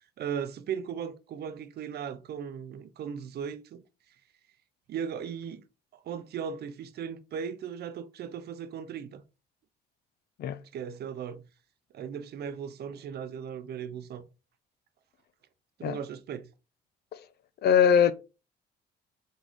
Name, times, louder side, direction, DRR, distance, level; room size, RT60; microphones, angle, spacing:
voice 1, 0.2-3.8 4.9-5.6 6.0-9.2 10.7-11.5 11.9-14.3 15.8-16.5, right 7 dB, 65° right, 0.6 m, -37 dB
voice 2, 17.6-18.1, left 8 dB, 65° left, 0.5 m, -21 dB
4.0 x 3.7 x 3.1 m
cardioid pair, 85°, 18 cm